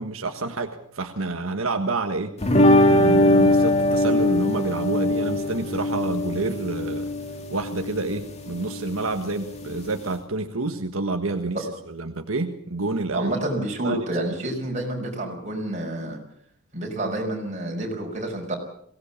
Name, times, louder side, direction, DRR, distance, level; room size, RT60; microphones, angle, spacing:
voice 1, 0.0-2.5 2.8-7.1 7.5-13.3 13.8-14.1, right 3 dB, 90° right, 5 dB, 1.5 m, -28 dB
sound 1, 2.4-10.1, left 1 dB, 30° left, 2.4 m, -21 dB
voice 2, 13.1-16.2 16.7-18.6, right 1 dB, 35° right, 1 dB, 5.7 m, -29 dB
22.5 x 18.0 x 7.2 m, 0.70 s
head